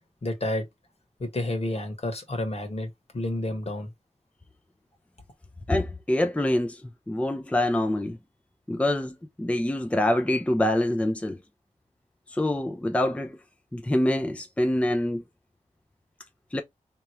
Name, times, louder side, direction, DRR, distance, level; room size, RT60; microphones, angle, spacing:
voice 1, 0.2-0.6 1.2-3.9, left 1 dB, 55° left, 1.5 m, -30 dB
voice 2, 5.7-8.2 8.7-11.4 12.3-13.4 13.7-15.2 16.5-16.6, left 1 dB, 10° left, 0.6 m, -25 dB
3.6 x 3.0 x 3.1 m
wide cardioid pair, 65°, 13 cm